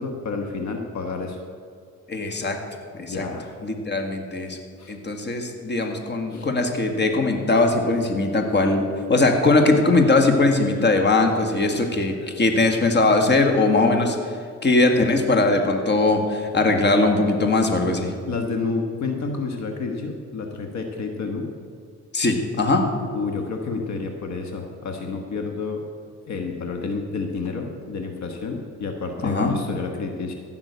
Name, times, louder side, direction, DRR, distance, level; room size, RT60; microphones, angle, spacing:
voice 1, 0.0-1.4 3.0-3.5 4.8-5.0 6.3-6.5 18.3-21.5 23.1-25.8 26.3-30.3, left 4 dB, 65° left, 4 dB, 1.4 m, -29 dB
voice 2, 2.1-2.6 2.9-3.3 3.6-4.6 4.9-14.3 14.6-18.1 22.1-22.8 29.2-29.6, left 2 dB, 35° left, 4 dB, 1.8 m, -20 dB
15.0 x 6.0 x 8.3 m, 2.2 s
cardioid pair, 90°, 30 cm